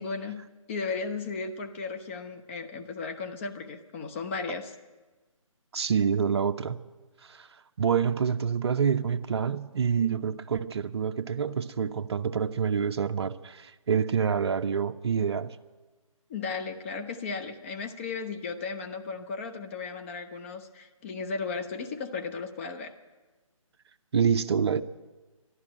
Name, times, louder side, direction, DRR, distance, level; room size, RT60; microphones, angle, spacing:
voice 1, 0.0-4.7 16.3-22.9, left 4 dB, 25° left, 6 dB, 0.8 m, -35 dB
voice 2, 5.7-6.8 7.3-7.5 7.8-15.6 24.1-24.8, right 7 dB, 50° right, 9 dB, 0.6 m, -27 dB
13.0 x 11.5 x 8.7 m, 1.2 s
figure-of-eight pair, 155°, 18 cm